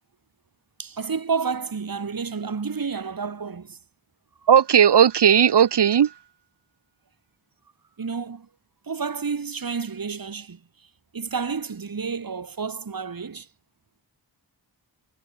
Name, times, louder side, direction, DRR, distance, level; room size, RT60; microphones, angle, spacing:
voice 1, 0.8-3.8 4.4-4.5 8.0-8.5 8.9-10.6 11.1-13.5, right 5 dB, 50° right, 1.5 m, -30 dB
voice 2, 4.5-6.1, right 8 dB, 70° right, 0.8 m, -16 dB
cardioid pair, 45°, 43 cm